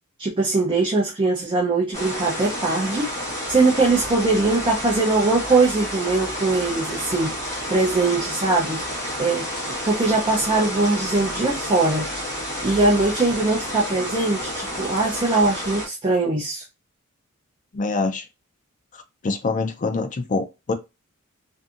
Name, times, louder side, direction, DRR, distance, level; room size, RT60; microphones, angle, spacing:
voice 1, 0.2-3.1 3.5-7.3 7.7-8.8 9.2-9.5 9.9-12.1 12.6-16.6, right 3 dB, 20° right, 0.5 m, -21 dB
sound 1, 1.9-15.9, equal, 15° left, 1.3 m, -30 dB
voice 2, 17.7-18.3 18.9-20.7, left 3 dB, 35° left, 0.4 m, -25 dB
2.6 x 2.6 x 2.4 m
head